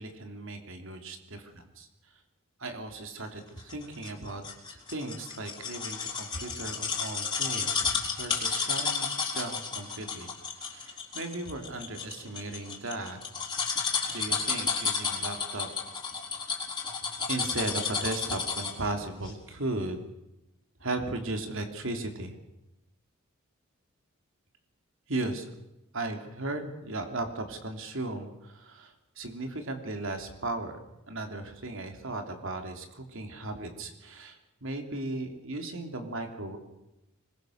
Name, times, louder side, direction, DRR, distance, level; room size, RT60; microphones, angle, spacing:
voice 1, 0.0-1.9 2.6-4.4 4.7-9.1 9.3-10.3 10.6-13.2 14.1-15.7 17.3-20.0 20.8-22.4 25.1-25.4 25.9-30.8 31.1-36.6, right 2 dB, 65° right, 5 dB, 3.3 m, -36 dB
sound 1, 3.7-18.9 19.2-19.3, left 5 dB, 20° left, 4.2 m, -32 dB
25.0 x 21.5 x 6.7 m, 0.92 s
head